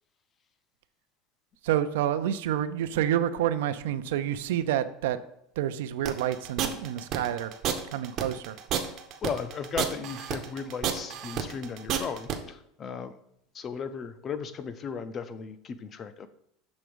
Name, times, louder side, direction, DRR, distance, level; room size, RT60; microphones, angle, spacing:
voice 1, 1.6-5.2 5.6-7.5 7.9-8.6, right 11 dB, 85° right, 11 dB, 0.4 m, -28 dB
sound 1, 6.0-12.4, right 9 dB, 35° right, 0.6 m, -30 dB
voice 2, 9.2-13.2 13.5-16.3, left 6 dB, 20° left, 12 dB, 0.3 m, -36 dB
6.2 x 3.4 x 5.2 m, 0.75 s
supercardioid pair, 175°, 0 cm